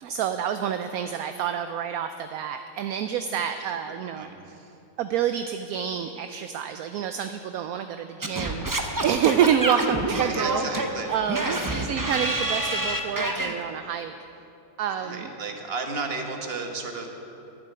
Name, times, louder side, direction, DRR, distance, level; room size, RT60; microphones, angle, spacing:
voice 1, 0.0-4.3 5.0-10.6 11.1-14.1 14.8-15.3, right 8 dB, 70° right, 9 dB, 1.0 m, -28 dB
voice 2, 3.9-4.8 9.8-9.9 10.1-11.9 15.0-17.1, right 4 dB, 40° right, 4 dB, 1.4 m, -34 dB
Singing / Scratching (performance technique), 8.2-13.5, right 2 dB, 20° right, 0.6 m, -27 dB
12.0 x 7.5 x 9.0 m, 2.7 s
omnidirectional pair, 1.7 m